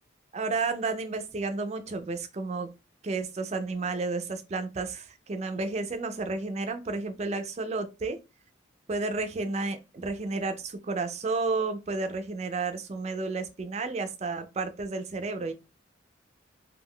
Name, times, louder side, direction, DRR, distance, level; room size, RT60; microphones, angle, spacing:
voice 1, 0.3-2.7 3.0-8.2 8.9-15.5, right 3 dB, 35° right, 0.4 m, -31 dB
2.2 x 2.2 x 3.5 m
head